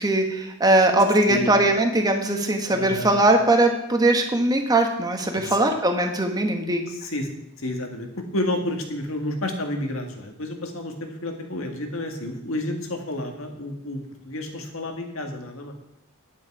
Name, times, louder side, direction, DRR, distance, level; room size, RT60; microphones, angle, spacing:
voice 1, 0.0-6.8, right 1 dB, 20° right, 4 dB, 1.4 m, -20 dB
voice 2, 2.7-3.2 5.3-5.6 6.9-7.3 7.6-15.7, left 1 dB, 65° left, 3 dB, 1.9 m, -30 dB
10.5 x 9.3 x 4.9 m, 0.83 s
head